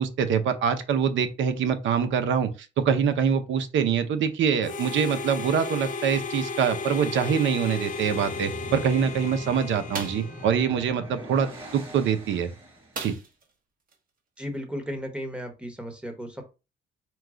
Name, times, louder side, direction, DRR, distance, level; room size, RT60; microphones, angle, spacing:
voice 1, 0.0-2.5 2.8-12.5 13.0-13.1, right 7 dB, 75° right, 10 dB, 0.7 m, -24 dB
Harmonica, 4.6-11.0, left 4 dB, 40° left, 0.5 m, -35 dB
sound 1, 7.7-13.0, right 1 dB, 30° right, 2.0 m, -42 dB
sound 2, 9.9-10.3 12.9-13.5 13.9-14.0 14.4-14.6, right 4 dB, 45° right, 1.3 m, -36 dB
voice 2, 14.4-16.4, equal, 5° right, 4 dB, 1.2 m, -35 dB
4.5 x 2.3 x 3.8 m, 0.30 s
cardioid pair, 90°, 20 cm